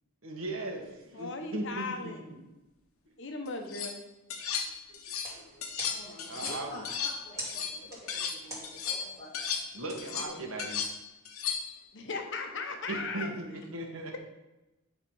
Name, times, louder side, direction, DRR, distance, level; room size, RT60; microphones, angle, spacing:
voice 1, 0.2-2.2 4.5-4.6 4.9-5.0 5.3-5.7 6.2-6.8 9.7-10.8 12.9-14.2, right 2 dB, 70° right, 2 dB, 1.6 m, -38 dB
voice 2, 1.1-2.2 3.2-4.0 10.1-10.5 11.9-13.3, left 3 dB, 60° left, 4 dB, 1.2 m, -37 dB
sound 1, 3.5-3.9 4.3-5.3 5.6-8.4 8.6-11.8, left 6 dB, 85° left, 1.1 m, -35 dB
sound 2, 5.1-10.9, right 1 dB, 15° right, 2.7 m, -47 dB
voice 3, 5.9-9.6, left 1 dB, 25° left, -7 dB, 2.5 m, -48 dB
10.5 x 4.0 x 5.5 m, 1.0 s
head